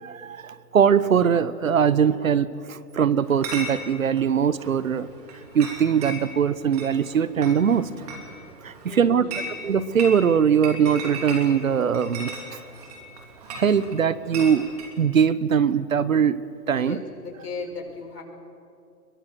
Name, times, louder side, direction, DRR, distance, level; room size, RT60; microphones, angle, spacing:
voice 1, 0.0-5.1 5.5-7.9 8.6-9.2 9.6-12.6 13.5-14.7 15.0-16.4 16.7-17.0, right 7 dB, 55° right, 17 dB, 1.0 m, -21 dB
Chatter / Chink clink, 3.2-14.9, right 2 dB, 25° right, 3.0 m, -38 dB
voice 2, 8.8-9.5 16.7-18.2, left 4 dB, 70° left, 1 dB, 6.5 m, -37 dB
23.5 x 22.5 x 7.8 m, 2.5 s
hypercardioid pair, 170°, 49 cm